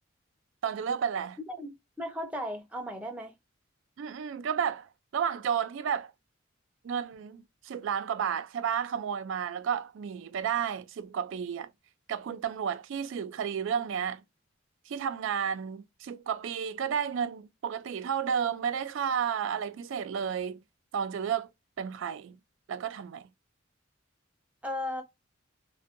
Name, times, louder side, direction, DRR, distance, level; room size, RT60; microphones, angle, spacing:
voice 1, 0.6-1.4 4.0-6.1 6.8-11.7 12.1-14.2 14.9-20.6 20.9-21.5 21.8-22.4 22.7-23.3, right 7 dB, 65° right, 0.3 m, -32 dB
voice 2, 1.6-3.3 24.6-25.0, left 1 dB, 5° right, 0.6 m, -36 dB
2.6 x 2.1 x 2.4 m
head